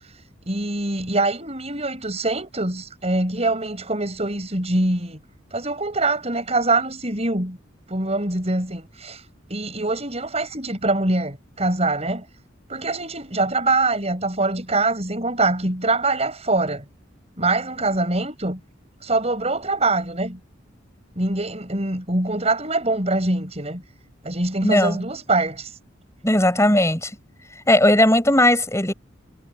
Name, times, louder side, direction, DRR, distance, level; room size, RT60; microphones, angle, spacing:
voice 1, 0.5-5.2 5.5-7.6 7.9-9.2 9.5-12.2 12.7-16.8 17.4-18.6 19.0-20.4 21.2-23.8 24.2-25.7, right 2 dB, 30° right, 6.9 m, -24 dB
voice 2, 24.6-25.0 26.2-27.1 27.7-28.9, left 1 dB, 15° left, 7.0 m, -17 dB
head